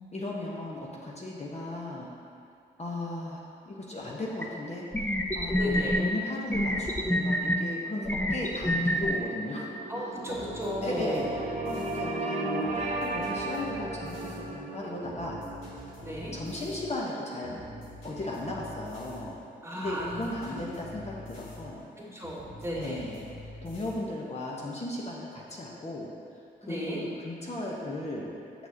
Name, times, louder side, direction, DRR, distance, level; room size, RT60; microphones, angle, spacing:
voice 1, 0.1-2.1 2.8-10.1 10.8-11.4 11.7-15.4 16.1-17.6 18.0-19.4 19.7-21.9 22.2-22.3 22.7-23.2 23.6-26.1 26.6-28.3, left 1 dB, 35° left, -4 dB, 1.0 m, -36 dB
sound 1, 4.4-4.5 4.9-6.0 6.5-7.6 8.1-9.1, equal, 10° left, 0.5 m, -27 dB
voice 2, 5.6-6.0 9.9-11.3 16.0-16.4 19.6-20.6 22.0-23.0 26.6-27.0, equal, 15° right, -4 dB, 1.4 m, -35 dB
sound 2, 6.6-19.2, right 2 dB, 35° right, 0.9 m, -37 dB
sound 3, 10.3-23.9, left 1 dB, 80° left, 1.5 m, -47 dB
6.0 x 6.0 x 2.8 m, 2.5 s
supercardioid pair, 50°, 20 cm